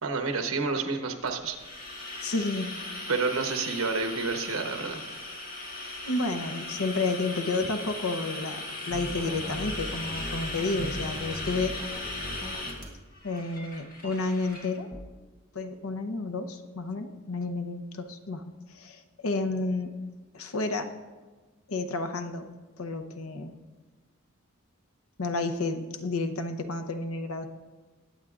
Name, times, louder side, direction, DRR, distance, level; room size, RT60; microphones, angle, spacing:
voice 1, 0.0-1.6 3.1-5.0, right 4 dB, 80° right, 5 dB, 1.1 m, -29 dB
sound 1, 1.3-14.7, left 2 dB, 40° left, 1.7 m, -38 dB
voice 2, 2.2-2.7 6.1-11.8 13.2-14.9 15.5-19.9 20.3-20.9 21.7-22.5 22.8-23.5 25.2-27.5, left 3 dB, 85° left, 8 dB, 0.8 m, -31 dB
sound 2, 8.9-12.9 14.9-15.0, right 1 dB, 5° right, 0.6 m, -39 dB
20.5 x 8.0 x 2.5 m, 1.3 s
head